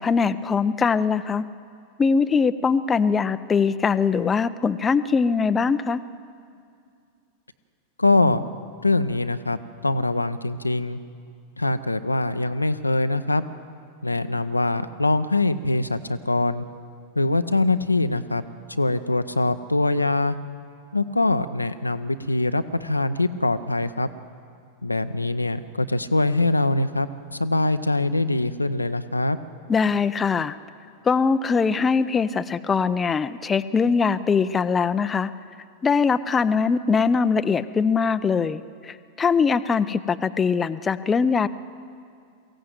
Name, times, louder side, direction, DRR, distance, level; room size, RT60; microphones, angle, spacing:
voice 1, 0.0-1.5 2.0-6.0 29.7-30.6 31.0-35.3 35.8-41.5, left 5 dB, 20° left, 12 dB, 0.5 m, -22 dB
voice 2, 8.0-8.4 8.8-9.6 9.8-11.0 11.6-13.4 14.0-16.6 17.2-18.4 18.7-20.4 20.9-24.1 24.8-29.4, left 2 dB, 85° left, 10 dB, 0.6 m, -23 dB
23.0 x 16.0 x 7.9 m, 2.4 s
figure-of-eight pair, 90°, 0 cm